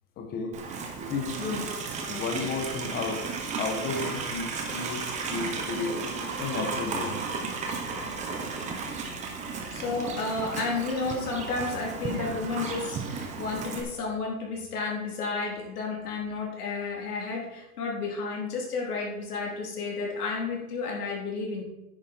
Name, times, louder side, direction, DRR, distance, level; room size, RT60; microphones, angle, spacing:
voice 1, 0.2-0.6 1.1-1.4 2.1-3.3 3.6-6.0 6.4-7.2 9.9-10.0, left 4 dB, 20° left, 3 dB, 1.4 m, -33 dB
Livestock farm animals working animals, 0.5-13.8, right 4 dB, 15° right, 1.2 m, -34 dB
voice 2, 9.7-21.6, left 4 dB, 85° left, -2 dB, 3.9 m, -32 dB
10.5 x 8.7 x 4.6 m, 0.98 s
supercardioid pair, 155°, 44 cm